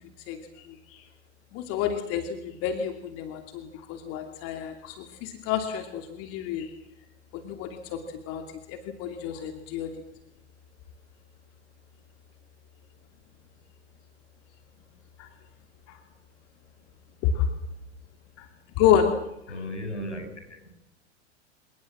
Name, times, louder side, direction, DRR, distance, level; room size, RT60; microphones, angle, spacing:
voice 1, 0.3-1.0 1.5-6.7 7.3-10.0 15.2-15.3 15.9-16.0 17.2-17.5 18.4-18.5 18.8-19.2, left 8 dB, 40° left, 6 dB, 2.8 m, -29 dB
voice 2, 19.5-20.7, equal, 80° left, 6 dB, 7.1 m, -36 dB
28.5 x 18.5 x 7.5 m, 0.85 s
figure-of-eight pair, 90°, 35 cm